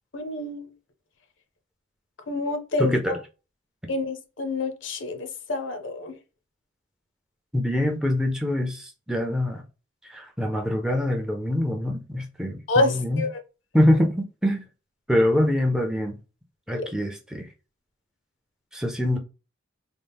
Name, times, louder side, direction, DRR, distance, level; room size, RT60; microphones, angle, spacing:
voice 1, 0.1-0.7 2.3-3.1 3.9-6.1 12.7-13.3 16.7-16.8, left 2 dB, 65° left, 0.6 m, -27 dB
voice 2, 2.8-3.2 7.5-9.6 10.1-13.2 13.7-14.6 15.1-16.2 16.7-17.5 18.7-19.2, left 1 dB, 5° right, 0.4 m, -24 dB
4.0 x 2.0 x 3.4 m
head